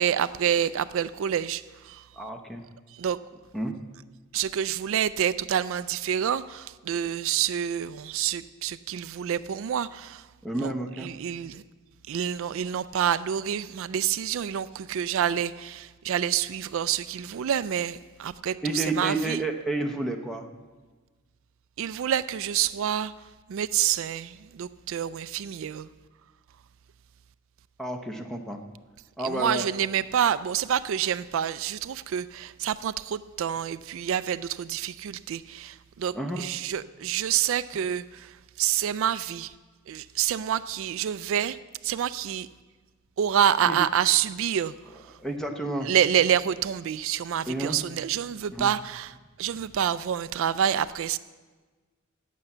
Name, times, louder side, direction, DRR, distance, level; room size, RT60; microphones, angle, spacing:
voice 1, 0.0-2.1 2.9-3.2 4.3-10.3 10.6-10.7 11.0-11.6 12.1-19.4 21.8-23.1 23.5-25.9 29.2-39.5 39.9-41.6 41.8-42.5 43.2-45.2 45.8-51.2, right 9 dB, 65° right, 0.3 m, -27 dB
voice 2, 2.2-2.6 3.5-3.7 10.4-11.1 18.6-20.5 27.8-28.6 29.2-29.6 36.1-36.5 43.7-43.8 45.2-45.9 47.5-47.8 48.5-48.7, right 2 dB, ahead, 0.8 m, -30 dB
11.5 x 8.4 x 7.8 m
head